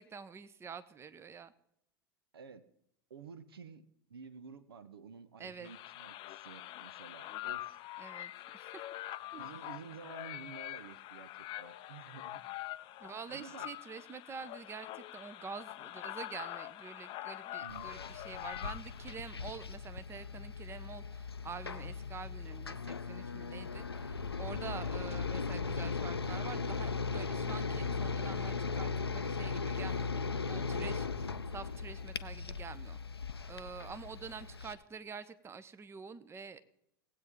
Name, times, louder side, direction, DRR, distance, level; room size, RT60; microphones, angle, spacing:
voice 1, 0.0-1.5 5.4-5.7 8.0-8.8 9.3-9.5 13.0-33.0 33.5-36.6, right 5 dB, 20° right, 13 dB, 0.8 m, -47 dB
voice 2, 2.3-2.7 3.1-7.8 9.3-12.4 13.3-13.7 17.6-17.9 24.5-24.9, right 6 dB, 75° right, 13 dB, 0.8 m, -51 dB
sound 1, 5.6-19.2, left 15 dB, 40° left, 0.5 m, -45 dB
sound 2, 17.7-34.7, left 4 dB, 90° left, 0.5 m, -38 dB
18.5 x 8.4 x 3.7 m, 0.76 s
figure-of-eight pair, 85°, 13 cm